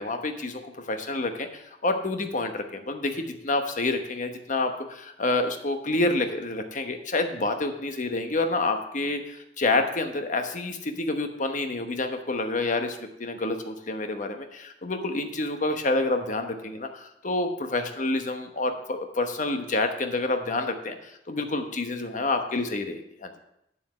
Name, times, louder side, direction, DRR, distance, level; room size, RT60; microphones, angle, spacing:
voice 1, 0.0-23.3, left 2 dB, 45° left, 6 dB, 1.0 m, -28 dB
8.4 x 7.4 x 6.5 m, 0.80 s
head